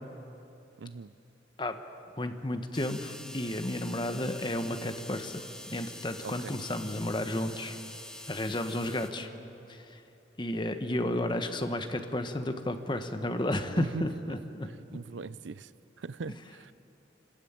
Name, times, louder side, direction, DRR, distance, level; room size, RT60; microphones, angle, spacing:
voice 1, 0.8-1.1 6.2-6.5 13.8-14.1 14.7-15.7 16.0-16.7, right 4 dB, 85° right, 17 dB, 0.5 m, -40 dB
voice 2, 2.2-7.8 8.3-9.3 9.7-10.0 10.4-14.7, left 1 dB, 25° left, 7 dB, 1.1 m, -32 dB
sound 1, 2.7-9.1, left 1 dB, 5° left, 1.0 m, -46 dB
26.5 x 13.0 x 8.8 m, 2.9 s
head